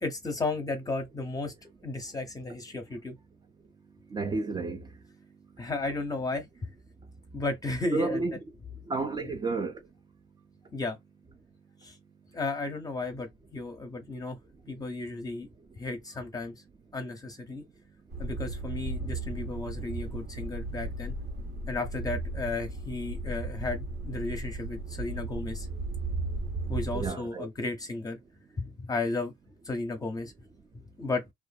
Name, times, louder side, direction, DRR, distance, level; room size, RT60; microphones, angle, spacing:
voice 1, 0.0-1.5 1.8-3.2 5.6-6.7 7.3-8.2 9.2-9.3 10.7-11.0 11.8-12.0 12.3-14.4 14.7-15.5 15.8-16.5 16.9-17.6 18.2-21.1 21.7-25.7 26.7-28.2 28.6-29.3 29.6-30.3 30.7-31.2, left 3 dB, 20° left, 0.7 m, -34 dB
voice 2, 4.1-4.9 7.9-8.3 8.9-9.8 26.9-27.5, right 3 dB, 25° right, 0.4 m, -31 dB
sound 1, 18.1-27.1, right 2 dB, 75° right, 1.1 m, -35 dB
2.5 x 2.3 x 2.2 m
cardioid pair, 110°, 17 cm